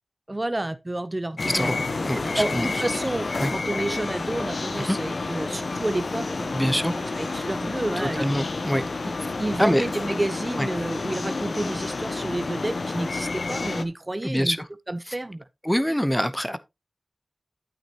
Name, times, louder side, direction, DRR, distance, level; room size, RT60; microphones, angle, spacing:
voice 1, 0.3-1.8 2.4-8.2 9.1-9.2 9.4-14.6 14.9-15.4 15.9-16.0, right 1 dB, 30° right, 0.6 m, -30 dB
sound 1, 1.4-13.8, left 3 dB, 75° left, 0.8 m, -30 dB
voice 2, 2.0-2.7 3.4-3.5 4.8-5.0 6.5-7.0 8.0-8.8 9.6-9.8 10.6-10.7 14.2-14.6 15.6-16.6, equal, 10° left, 0.9 m, -24 dB
8.9 x 8.5 x 2.9 m
cardioid pair, 40°, 0 cm